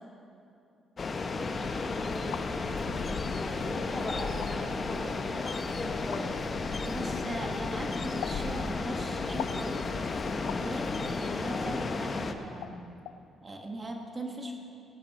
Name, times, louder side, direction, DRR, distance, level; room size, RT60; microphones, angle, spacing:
sound 1, 1.0-12.3, left 3 dB, 40° left, 0.9 m, -33 dB
voice 1, 1.1-2.9 3.4-6.4, left 1 dB, 20° left, 0 dB, 2.0 m, -41 dB
Walk footsteps, 2.1-11.7, left 3 dB, 70° left, 1.1 m, -44 dB
sound 2, 2.3-2.5 3.4-3.5 4.3-4.5 6.1-6.3 8.2-8.4 9.4-9.6 10.5-10.7 11.9-12.0 12.6-12.8 13.0-13.2, left 11 dB, 90° left, 0.4 m, -39 dB
voice 2, 6.8-9.9 10.5-12.8 13.4-14.6, right 1 dB, 30° right, 2 dB, 1.6 m, -40 dB
18.5 x 12.5 x 4.2 m, 2.7 s
cardioid pair, 90°, 0 cm